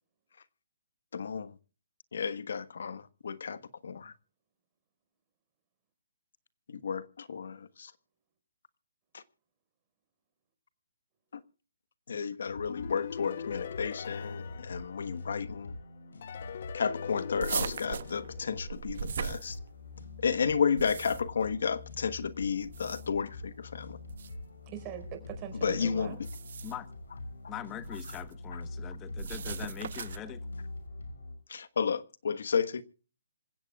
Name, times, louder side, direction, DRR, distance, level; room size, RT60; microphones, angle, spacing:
voice 1, 1.1-1.5 2.1-4.1 6.7-7.9 9.1-9.2 11.3-11.4 12.1-15.7 16.7-19.6 20.2-24.0 25.6-26.2 27.4-27.5 31.5-32.8, left 6 dB, 70° left, 1.3 m, -32 dB
sound 1, 12.5-31.4, left 2 dB, 85° left, 6.5 m, -44 dB
sound 2, 12.7-15.5 16.2-19.0, left 9 dB, 50° left, 0.9 m, -42 dB
sound 3, 17.4-20.0 20.6-21.4 22.6-23.3 24.1-24.3 26.1-26.9 27.8-28.3 29.2-30.3, right 7 dB, 60° right, 0.9 m, -38 dB
voice 2, 24.6-26.2, right 10 dB, 25° right, 4.6 m, -42 dB
voice 3, 27.5-30.4, left 11 dB, 15° left, 1.1 m, -42 dB
27.0 x 16.0 x 2.4 m
hypercardioid pair, 160°, 0 cm